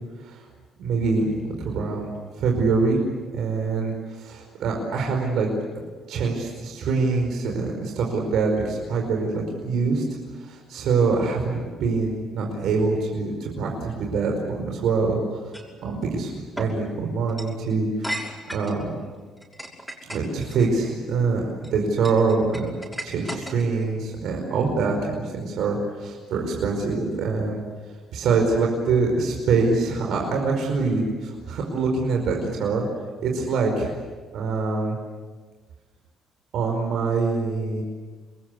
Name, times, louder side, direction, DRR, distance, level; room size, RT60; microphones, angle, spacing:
voice 1, 0.8-1.3 1.6-2.1 2.4-3.0 3.3-5.5 6.1-10.0 10.4-15.4 15.8-16.3 16.6-19.0 20.1-22.7 23.0-27.6 28.1-32.8 33.2-33.9 34.3-35.0 36.5-37.8, right 4 dB, 75° right, 1 dB, 4.9 m, -24 dB
sound 1, 15.5-15.7 16.6-16.7 17.3-17.5 18.0-18.8 19.4-20.7 21.4-21.7 22.0-23.8, equal, ahead, 6.0 m, -35 dB
27.0 x 21.5 x 8.4 m, 1.4 s
cardioid pair, 105°, 0 cm